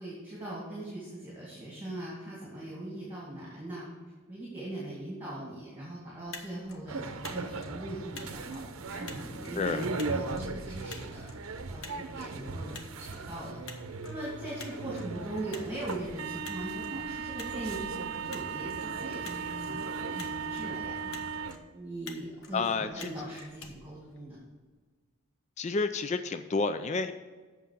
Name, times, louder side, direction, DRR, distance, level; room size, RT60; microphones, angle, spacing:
voice 1, 0.0-3.9 4.3-9.8 10.1-11.3 11.7-13.6 14.0-21.1 21.7-24.4, right 1 dB, 10° right, -7 dB, 2.3 m, -41 dB
Motor vehicle (road), 6.1-24.7, left 4 dB, 75° left, 1.1 m, -51 dB
sound 1, 6.9-21.6, right 4 dB, 80° right, 0.7 m, -37 dB
voice 2, 22.5-22.9 25.6-27.1, left 4 dB, 30° left, 10 dB, 0.3 m, -29 dB
8.0 x 6.2 x 6.6 m, 1.4 s
head